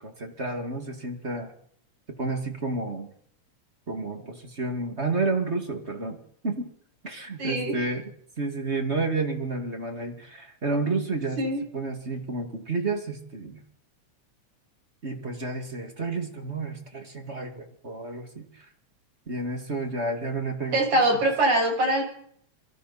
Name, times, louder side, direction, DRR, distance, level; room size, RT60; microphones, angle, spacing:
voice 1, 0.0-1.5 2.1-3.1 3.9-6.2 6.4-6.7 7.0-8.1 8.4-11.4 11.7-13.6 15.0-18.7 19.3-21.0, right 3 dB, 25° right, 5 dB, 2.2 m, -30 dB
voice 2, 7.4-7.8 11.4-11.6 20.7-22.0, right 1 dB, 80° right, 2 dB, 7.5 m, -23 dB
27.0 x 23.5 x 4.2 m, 0.64 s
omnidirectional pair, 3.3 m